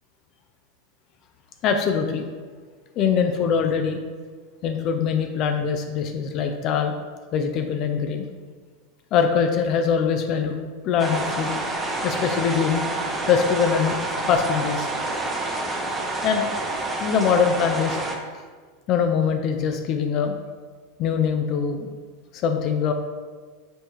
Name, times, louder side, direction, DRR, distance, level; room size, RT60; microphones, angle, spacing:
voice 1, 1.6-2.2 3.0-4.0 4.6-6.9 7.3-8.3 9.1-10.6 10.8-11.6 12.0-12.8 13.3-14.0 14.3-14.9 16.2-16.4 17.0-18.0 18.9-20.4 21.0-21.9 22.3-22.9, left 6 dB, 45° left, 5 dB, 0.4 m, -22 dB
sound 1, 11.0-18.2, right 2 dB, 20° right, 0.7 m, -28 dB
5.3 x 2.8 x 3.0 m, 1.5 s
hypercardioid pair, 95°, 0 cm